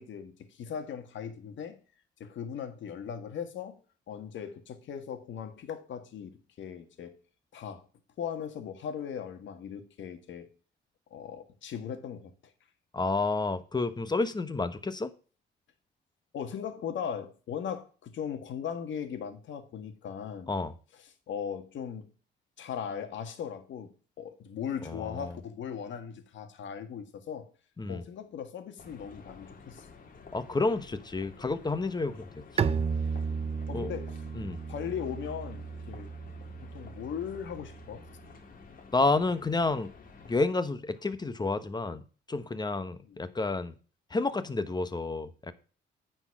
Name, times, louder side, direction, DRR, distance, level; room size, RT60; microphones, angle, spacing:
voice 1, 0.0-1.8 2.2-3.8 4.1-7.1 7.5-7.8 8.2-10.5 11.1-12.3 16.3-20.5 21.3-22.1 22.6-23.9 24.2-27.5 27.9-29.9 33.7-34.1 34.7-36.1 36.7-38.1 43.1-43.2, left 8 dB, 70° left, 1.7 m, -38 dB
voice 2, 12.9-15.1 20.5-20.7 24.8-25.3 27.8-28.0 30.3-32.8 33.7-33.9 34.3-34.6 38.9-39.9 40.2-42.0 42.3-43.7 44.1-45.5, left 3 dB, 20° left, 1.0 m, -30 dB
sound 1, 28.8-40.5, left 4 dB, 45° left, 2.0 m, -51 dB
Bowed string instrument, 32.6-38.2, right 6 dB, 30° right, 0.5 m, -34 dB
9.6 x 4.5 x 5.8 m
cardioid pair, 90°, 20 cm